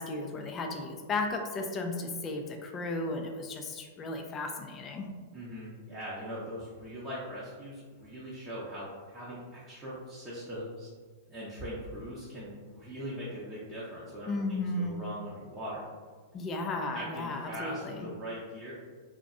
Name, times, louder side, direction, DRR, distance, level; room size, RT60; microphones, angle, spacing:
voice 1, 0.0-5.1 14.3-15.0 16.3-18.1, left 2 dB, 30° left, 4 dB, 0.4 m, -34 dB
voice 2, 5.3-10.9 11.3-15.8 16.9-18.7, equal, 20° right, -9 dB, 0.7 m, -41 dB
2.5 x 2.1 x 2.5 m, 1.5 s
hypercardioid pair, 110°, 0 cm